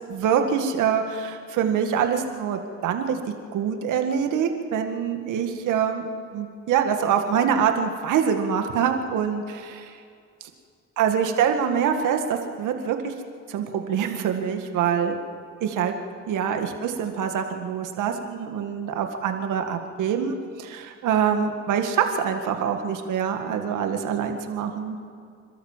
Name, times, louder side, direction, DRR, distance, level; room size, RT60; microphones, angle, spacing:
voice 1, 0.1-3.2 3.5-9.9 11.0-13.1 13.5-15.2 15.6-15.9 16.3-25.0, right 7 dB, 85° right, 5 dB, 2.0 m, -25 dB
27.5 x 13.0 x 7.4 m, 2.3 s
cardioid pair, 90°, 30 cm